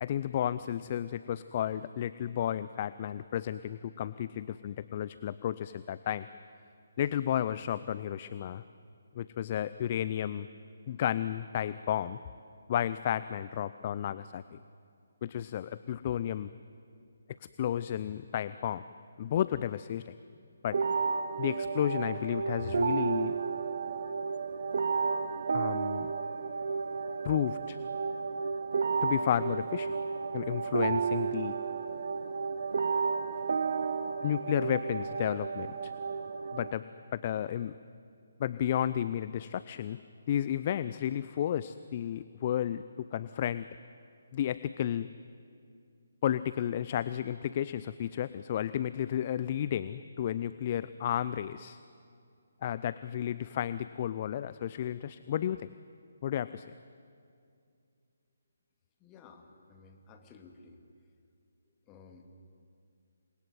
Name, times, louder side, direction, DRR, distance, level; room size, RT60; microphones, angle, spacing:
voice 1, 0.0-6.3 7.0-8.6 9.1-10.5 10.9-12.2 12.7-14.6 15.2-16.5 17.6-18.8 19.2-20.1 20.6-20.8 21.4-23.4 25.5-26.1 27.2-27.8 29.0-29.9 30.3-31.6 34.2-35.9 36.5-36.9 37.1-37.7 38.4-40.0 40.3-43.7 44.3-45.1 46.2-51.8 52.6-55.7 56.2-56.7, left 10 dB, 35° left, 15 dB, 0.6 m, -32 dB
sound 1, 20.7-36.7, right 5 dB, 55° right, 1.1 m, -32 dB
voice 2, 59.0-60.8 61.7-62.4, left 4 dB, 20° left, 4 dB, 2.6 m, -55 dB
27.5 x 21.5 x 9.5 m, 2.4 s
figure-of-eight pair, 145°, 0 cm